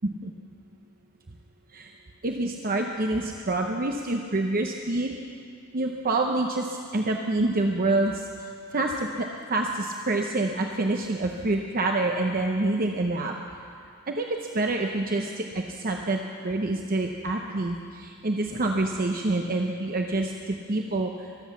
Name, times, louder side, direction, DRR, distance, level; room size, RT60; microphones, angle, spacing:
voice 1, 2.2-5.1 5.7-13.3 14.1-14.3 14.5-21.3, right 2 dB, 40° right, 2 dB, 0.8 m, -27 dB
23.5 x 7.9 x 7.1 m, 2.4 s
head